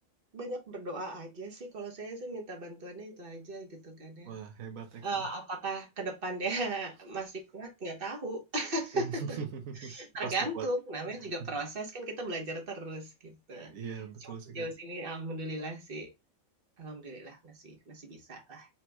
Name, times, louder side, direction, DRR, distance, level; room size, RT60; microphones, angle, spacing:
voice 1, 0.3-4.3 5.0-9.4 9.8-16.1 16.8-18.7, right 2 dB, 45° right, 1.2 m, -37 dB
voice 2, 4.2-5.2 8.9-9.9 10.2-10.7 13.7-14.7, right 6 dB, 70° right, 1.3 m, -40 dB
4.4 x 4.4 x 2.2 m
omnidirectional pair, 1.5 m